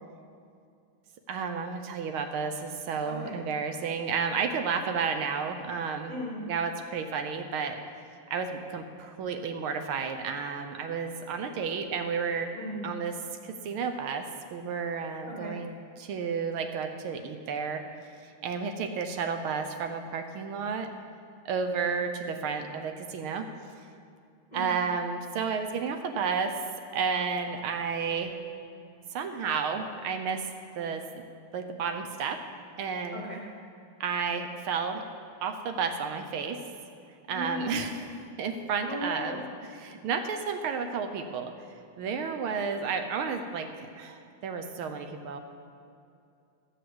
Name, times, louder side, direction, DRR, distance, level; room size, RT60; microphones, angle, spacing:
voice 1, 1.3-6.1 6.5-7.8 8.3-12.5 12.8-13.1 13.4-14.2 14.5-17.8 18.4-20.9 21.4-23.5 24.5-26.5 26.9-28.4 29.1-30.5 30.8-31.2 31.5-32.4 32.8-33.2 34.0-35.0 35.4-36.6 37.3-38.0 38.4-39.4 39.7-41.5 42.0-45.4, right 5 dB, 75° right, 6 dB, 1.6 m, -32 dB
voice 2, 3.1-3.4 6.1-6.5 12.5-12.9 15.2-15.6 24.5-24.7 33.1-33.4 37.3-37.9 38.9-39.5, equal, 30° left, -3 dB, 0.9 m, -36 dB
13.0 x 4.9 x 7.7 m, 2.5 s
omnidirectional pair, 2.4 m